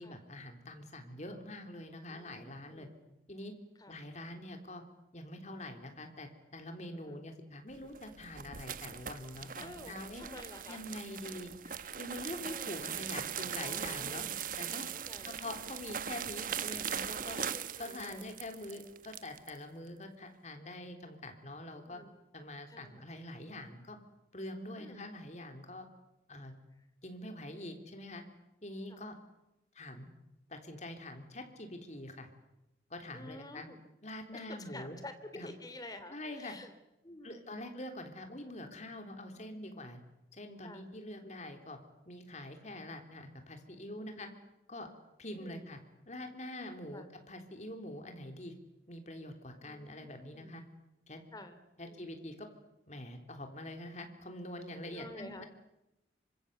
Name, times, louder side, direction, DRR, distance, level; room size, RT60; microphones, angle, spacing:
voice 1, 0.0-2.9 3.3-3.5 3.9-4.8 5.1-10.2 10.7-11.5 12.0-14.2 14.6-14.9 15.2-17.4 17.8-22.0 22.3-24.0 24.3-25.9 26.3-26.5 27.0-28.2 28.6-29.2 29.7-30.1 30.5-32.3 32.9-33.7 34.0-35.0 35.4-35.5 36.1-36.5 37.2-40.0 40.3-41.8 42.1-44.3 44.7-44.9 45.2-45.8 46.1-48.5 48.9-50.6 51.1-51.2 51.8-52.5 52.9-55.5, left 1 dB, 40° left, 5 dB, 3.6 m, -45 dB
voice 2, 2.1-3.1 3.8-4.0 6.9-7.2 9.6-10.8 11.6-11.9 12.4-12.7 13.6-14.4 15.1-15.5 17.2-18.3 21.9-22.1 22.7-23.0 24.8-25.1 28.9-29.0 33.1-33.8 34.3-36.7 37.0-37.7 38.5-38.6 39.3-39.6 40.6-40.9 44.0-44.4 45.3-45.8 46.9-47.1 49.6-50.6 51.3-52.1 54.9-55.4, left 1 dB, 20° left, 9 dB, 2.8 m, -50 dB
sound 1, 7.8-19.6, right 8 dB, 45° right, 1.1 m, -40 dB
26.5 x 25.0 x 8.2 m, 0.91 s
head